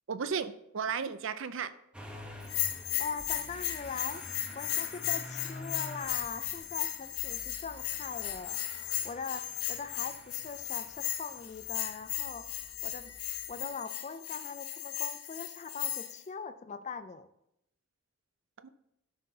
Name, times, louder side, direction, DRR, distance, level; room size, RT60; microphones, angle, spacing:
voice 1, 0.1-1.7 18.6-18.7, right 6 dB, 60° right, 13 dB, 0.5 m, -34 dB
Motor vehicle (road) / Engine starting, 1.9-13.6, left 1 dB, 5° right, 0.9 m, -49 dB
Bell, 2.4-16.2, left 13 dB, 80° left, 0.8 m, -36 dB
voice 2, 3.0-4.3 4.5-8.7 9.0-17.3, left 5 dB, 30° left, 10 dB, 0.4 m, -41 dB
13.0 x 5.7 x 2.8 m, 0.82 s
head